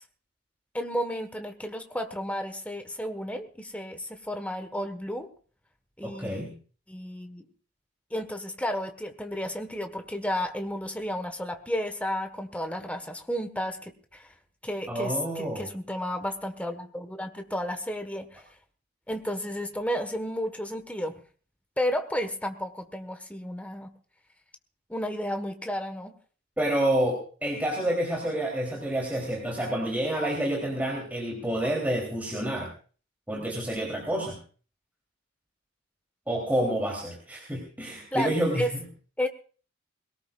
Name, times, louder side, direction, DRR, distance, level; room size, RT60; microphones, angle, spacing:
voice 1, 0.7-5.3 6.0-6.4 6.9-7.4 8.1-14.3 14.6-18.5 19.1-21.2 21.8-23.9 24.9-26.1 38.1-38.7 39.2-39.3, equal, 5° left, 6 dB, 1.4 m, -32 dB
voice 2, 6.0-6.5 14.9-15.7 26.6-32.7 33.3-34.4 36.3-38.8, right 1 dB, 10° right, -2 dB, 3.4 m, -28 dB
21.5 x 18.0 x 2.5 m, 0.39 s
head